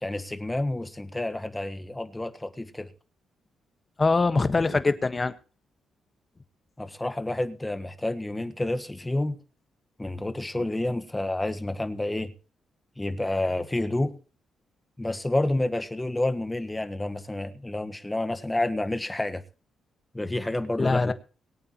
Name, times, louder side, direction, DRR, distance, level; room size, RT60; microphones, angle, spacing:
voice 1, 0.0-2.9 6.8-9.4 10.0-12.3 13.0-14.1 15.0-19.4 20.1-21.1, left 1 dB, 15° left, 1.3 m, -29 dB
voice 2, 4.0-5.3 20.8-21.1, left 3 dB, 30° left, 1.4 m, -23 dB
22.5 x 8.8 x 3.0 m
cardioid pair, 75°, 0 cm